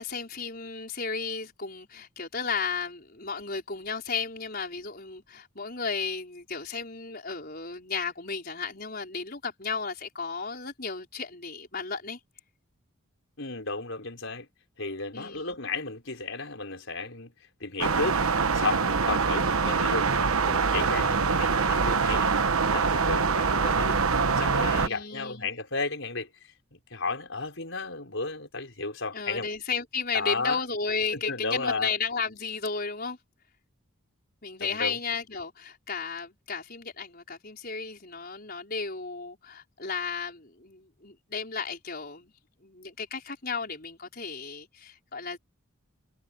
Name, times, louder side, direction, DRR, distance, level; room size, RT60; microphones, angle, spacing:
voice 1, 0.0-12.2 15.1-15.4 21.0-21.4 24.7-25.5 29.1-33.2 34.4-42.3 42.6-45.4, left 5 dB, 45° left, 5.2 m, -34 dB
voice 2, 13.4-14.5 14.8-17.3 17.6-18.2 18.5-20.1 20.5-22.3 22.7-24.0 24.4-26.3 26.7-29.5 30.1-30.6 31.1-31.9 34.6-35.0, left 3 dB, 60° left, 5.8 m, -33 dB
sound 1, 17.8-24.9, right 5 dB, 85° right, 1.1 m, -24 dB
head